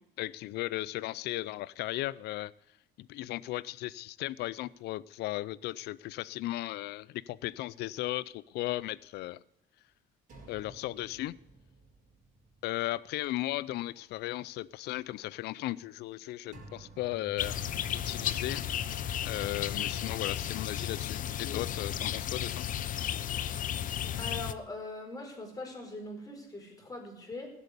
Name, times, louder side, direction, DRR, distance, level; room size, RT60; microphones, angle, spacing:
voice 1, 0.0-2.5 3.0-9.4 10.5-11.3 12.6-17.6 17.9-18.7 19.2-22.6, left 16 dB, 80° left, 21 dB, 0.5 m, -36 dB
sound 1, 10.3-13.4 13.8-13.9 16.5-22.6, right 2 dB, 55° right, 5.4 m, -52 dB
sound 2, 17.4-24.5, left 10 dB, 50° left, 0.7 m, -34 dB
voice 2, 24.2-27.5, left 2 dB, 20° left, 1 dB, 4.8 m, -41 dB
16.0 x 8.2 x 8.3 m, 0.79 s
cardioid pair, 110°, 17 cm